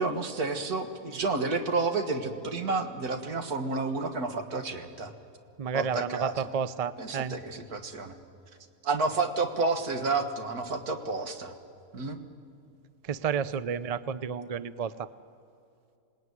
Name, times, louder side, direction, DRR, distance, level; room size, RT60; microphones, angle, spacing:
voice 1, 0.0-5.1 5.7-6.5 7.0-8.2 8.8-11.5 11.9-12.2, right 3 dB, 85° right, 6 dB, 2.1 m, -30 dB
voice 2, 5.6-7.4 13.0-15.1, right 7 dB, 60° right, 15 dB, 0.3 m, -31 dB
26.5 x 18.5 x 9.7 m, 2.5 s
omnidirectional pair, 1.6 m